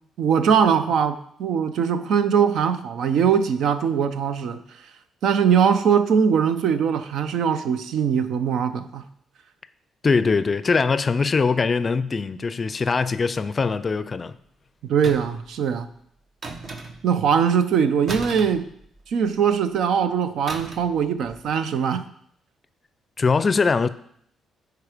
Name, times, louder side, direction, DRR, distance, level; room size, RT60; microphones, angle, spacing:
voice 1, 0.2-4.6 5.2-9.0 14.8-15.9 17.0-18.7 19.1-22.0, right 7 dB, 75° right, 0.6 m, -21 dB
voice 2, 10.0-14.3 23.2-23.9, left 4 dB, 35° left, 0.4 m, -22 dB
sound 1, 15.0-15.5 16.4-17.2 18.1-19.3 20.5-21.0 21.2-21.5, right 3 dB, 50° right, 1.1 m, -35 dB
9.3 x 4.8 x 5.0 m
cardioid pair, 90°, 0 cm